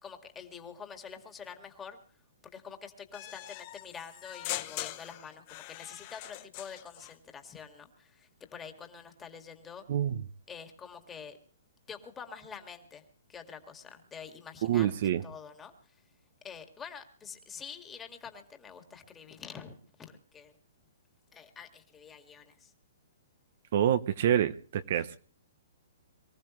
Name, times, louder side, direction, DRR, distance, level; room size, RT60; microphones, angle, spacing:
voice 1, 0.0-2.0 2.4-9.9 10.5-11.4 11.9-13.0 13.3-16.0 16.4-20.6 21.3-22.7 24.9-25.0, left 6 dB, 10° left, 6 dB, 2.0 m, -47 dB
sound 1, 3.1-7.2, left 16 dB, 30° left, 0.9 m, -41 dB
voice 2, 14.6-15.2 23.7-25.2, right 10 dB, 50° right, 12 dB, 0.9 m, -27 dB
24.0 x 14.5 x 3.2 m, 0.43 s
hypercardioid pair, 160°, 0 cm